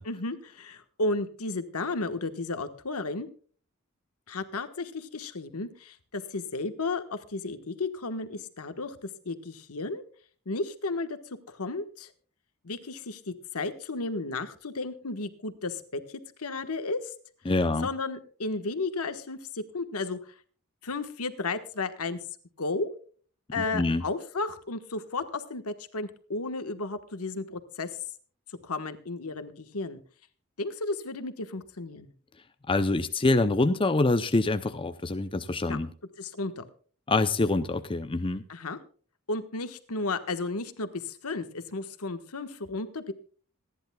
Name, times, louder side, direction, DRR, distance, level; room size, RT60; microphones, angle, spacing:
voice 1, 0.0-3.3 4.3-9.0 9.2-10.0 10.4-11.2 11.5-12.1 12.6-17.0 17.5-20.3 20.8-22.2 22.6-22.9 23.5-27.9 28.6-30.0 30.6-32.1 35.7-35.9 36.2-36.7 38.5-38.8 39.3-43.1, left 3 dB, 75° left, 10 dB, 1.3 m, -33 dB
voice 2, 17.5-17.9 23.6-24.0 32.7-35.9 37.1-38.4, left 2 dB, 25° left, 10 dB, 0.6 m, -25 dB
26.0 x 10.5 x 2.3 m, 0.44 s
head